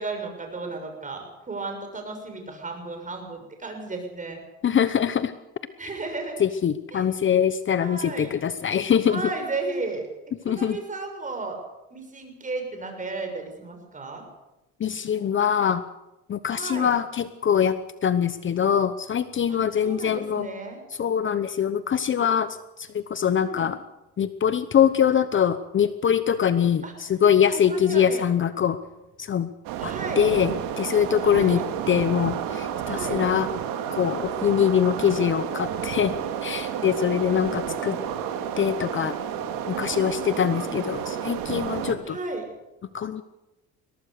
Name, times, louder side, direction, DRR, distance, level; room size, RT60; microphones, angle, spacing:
voice 1, 0.0-4.4 5.8-6.4 6.9-7.1 7.8-8.3 9.1-10.1 10.4-11.6 11.9-14.2 16.5-16.9 19.5-19.6 19.8-20.8 23.2-23.7 26.8-26.9 27.5-28.3 29.8-30.3 31.2-31.6 32.9-33.2 37.1-38.0 39.9-40.9 42.0-42.4, right 3 dB, 25° right, 4 dB, 6.7 m, -34 dB
voice 2, 4.6-5.3 6.4-9.2 10.4-10.8 14.8-15.8 16.3-20.5 21.0-23.8 24.2-28.8 29.2-29.5 29.8-31.6 31.9-33.5 33.9-36.1 36.4-38.0 38.6-39.2 39.7-42.2 42.9-43.2, left 8 dB, 35° left, 13 dB, 0.9 m, -23 dB
sound 1, 29.6-41.9, right 9 dB, 80° right, 2.7 m, -31 dB
22.0 x 18.5 x 6.7 m, 0.97 s
cardioid pair, 110°, 33 cm